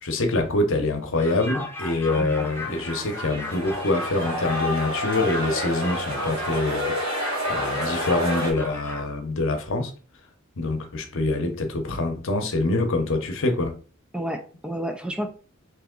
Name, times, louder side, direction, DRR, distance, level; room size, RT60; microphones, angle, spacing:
voice 1, 0.0-6.9 7.5-9.9 10.6-13.7, left 2 dB, 65° left, 0.8 m, -25 dB
sound 1, 1.2-9.0, left 1 dB, 10° left, 0.7 m, -35 dB
voice 2, 2.2-2.5 14.1-15.3, right 1 dB, 5° right, 0.3 m, -31 dB
sound 2, 2.4-8.5, equal, 70° right, 1.4 m, -30 dB
3.4 x 2.9 x 3.7 m
head